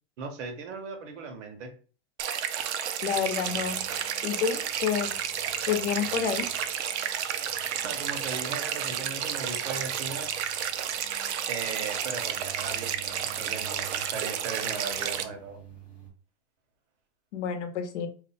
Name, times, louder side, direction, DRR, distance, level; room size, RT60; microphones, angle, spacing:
voice 1, 0.2-1.7 7.8-10.3 11.5-15.6, right 5 dB, 85° right, 5 dB, 1.1 m, -37 dB
sound 1, 2.2-15.2, right 9 dB, 70° right, 0.5 m, -31 dB
voice 2, 3.0-3.8 4.2-5.1 5.7-6.4 17.3-18.1, left 8 dB, 80° left, 7 dB, 0.8 m, -29 dB
sound 2, 3.1-16.1, right 8 dB, 5° right, 0.4 m, -52 dB
2.7 x 2.1 x 4.0 m, 0.39 s
supercardioid pair, 175°, 35 cm